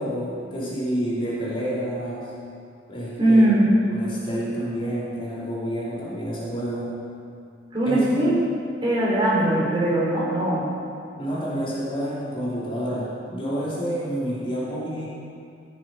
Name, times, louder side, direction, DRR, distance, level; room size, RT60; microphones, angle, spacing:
voice 1, 0.0-2.3 2.9-3.4 3.9-6.9 7.8-8.0 11.2-15.1, equal, 30° left, -8 dB, 3.2 m, -29 dB
voice 2, 3.2-3.6 7.7-8.3 8.8-10.6, right 1 dB, 30° right, -6 dB, 3.4 m, -20 dB
15.0 x 7.5 x 5.5 m, 2.4 s
head